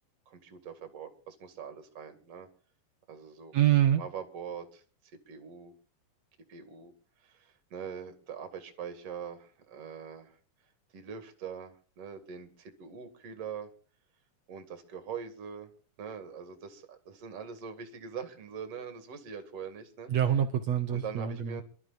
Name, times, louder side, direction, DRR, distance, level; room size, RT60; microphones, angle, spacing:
voice 1, 0.3-2.5 3.1-3.5 3.9-5.7 6.5-6.9 7.2-10.4 10.9-13.7 14.5-15.7 16.0-20.1 20.9-21.6, right 7 dB, 45° right, 8 dB, 2.6 m, -43 dB
voice 2, 3.5-4.0 20.1-21.6, right 10 dB, 70° right, 8 dB, 1.6 m, -25 dB
27.0 x 12.5 x 2.5 m, 0.39 s
omnidirectional pair, 4.4 m